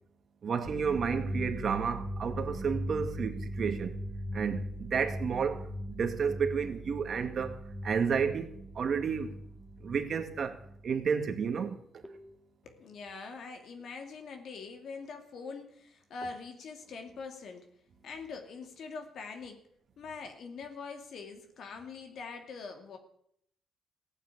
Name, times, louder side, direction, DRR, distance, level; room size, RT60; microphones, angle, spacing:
voice 1, 0.4-4.0 4.3-9.4 9.8-10.6 10.8-11.8, right 6 dB, 50° right, 2.0 m, -31 dB
sound 1, 0.6-11.4 12.0-12.3, equal, 10° left, 2.0 m, -40 dB
voice 2, 12.6-17.7 18.0-19.7 20.0-23.0, left 4 dB, 65° left, 2.5 m, -43 dB
15.5 x 9.0 x 8.5 m
cardioid pair, 90°, 0 cm